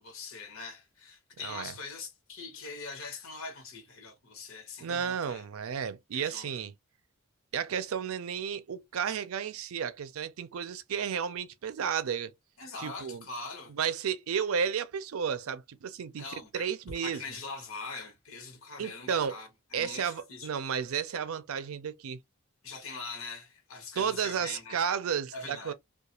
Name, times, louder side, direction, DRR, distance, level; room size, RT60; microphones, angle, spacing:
voice 1, 0.0-5.4 6.1-6.5 12.6-13.7 16.2-16.7 16.9-20.5 22.6-24.8 25.3-25.7, left 4 dB, 80° left, 1.0 m, -43 dB
voice 2, 1.4-1.7 4.8-6.7 7.5-12.3 12.8-13.2 13.7-16.2 16.5-17.2 18.8-19.4 19.7-22.2 24.0-25.7, right 7 dB, 90° right, 0.4 m, -32 dB
2.3 x 2.3 x 2.8 m
head